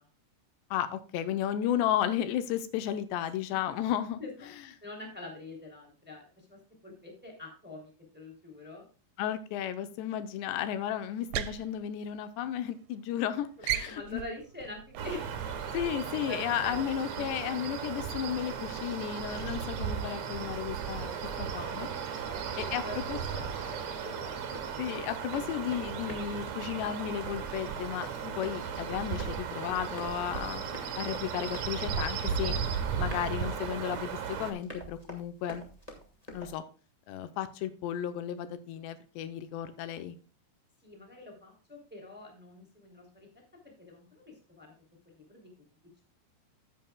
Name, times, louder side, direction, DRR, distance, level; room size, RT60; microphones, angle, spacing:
voice 1, 0.7-4.2 9.2-14.2 15.7-21.9 22.6-23.2 24.8-30.6 31.0-32.6 33.0-35.6 36.3-36.6 37.1-40.2, left 10 dB, 85° left, 10 dB, 3.0 m, -34 dB
voice 2, 4.8-8.8 13.9-15.2 16.0-16.8 17.1-17.2 22.2-24.4 40.8-43.3 43.8-44.7 45.0-45.5, left 2 dB, 5° right, 0 dB, 2.3 m, -45 dB
sound 1, 11.1-12.8 13.0-13.3 13.6-16.2, right 12 dB, 85° right, 2.7 m, -37 dB
sound 2, 15.0-34.5, right 7 dB, 60° right, 2.2 m, -36 dB
Run, 23.2-36.5, equal, 20° left, 1.1 m, -48 dB
15.0 x 7.7 x 2.3 m, 0.35 s
omnidirectional pair, 4.9 m